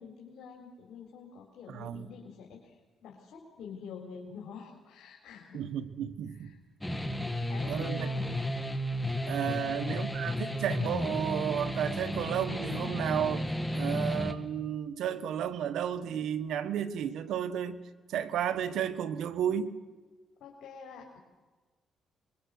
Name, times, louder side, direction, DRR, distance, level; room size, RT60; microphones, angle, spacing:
voice 1, 0.0-5.6 6.3-6.6 7.5-8.4 9.5-9.8 20.4-21.2, left 6 dB, 75° left, -1 dB, 3.7 m, -47 dB
voice 2, 1.7-2.1 5.5-6.5 7.7-8.1 9.3-13.4 13.7-17.8 18.1-19.7, right 9 dB, 80° right, 11 dB, 1.3 m, -32 dB
sound 1, 6.8-14.3, equal, 10° left, 1.8 m, -33 dB
24.5 x 22.0 x 6.6 m, 1.3 s
cardioid pair, 90°, 0 cm